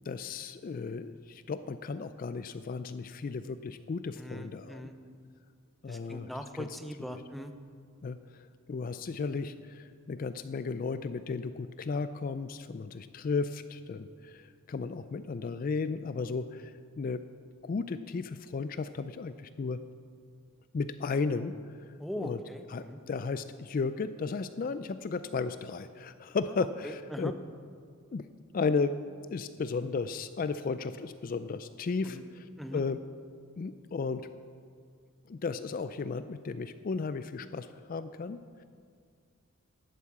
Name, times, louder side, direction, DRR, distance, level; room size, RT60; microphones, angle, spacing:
voice 1, 0.1-4.8 5.8-6.3 6.5-6.7 8.0-17.2 17.6-19.8 20.7-21.6 22.2-22.4 22.7-27.3 28.1-28.3 28.5-29.0 29.3-32.5 32.7-33.0 33.6-34.3 35.3-38.6, left 4 dB, 40° left, 12 dB, 0.3 m, -34 dB
voice 2, 4.2-4.9 5.9-7.5 22.0-23.0 26.5-26.7 27.1-27.3 32.0-32.2 32.6-32.8, equal, ahead, 7 dB, 0.6 m, -40 dB
11.5 x 8.4 x 7.3 m, 2.1 s
head